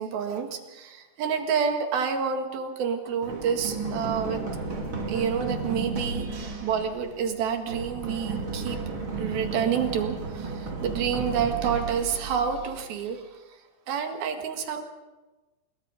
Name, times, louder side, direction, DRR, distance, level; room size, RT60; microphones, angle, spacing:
voice 1, 0.0-4.4 5.1-8.8 9.2-13.4 13.9-14.8, right 7 dB, 75° right, 5 dB, 3.7 m, -29 dB
Run, 3.2-13.0, right 4 dB, 35° right, 3.3 m, -33 dB
25.0 x 22.5 x 5.2 m, 1.2 s
omnidirectional pair, 4.3 m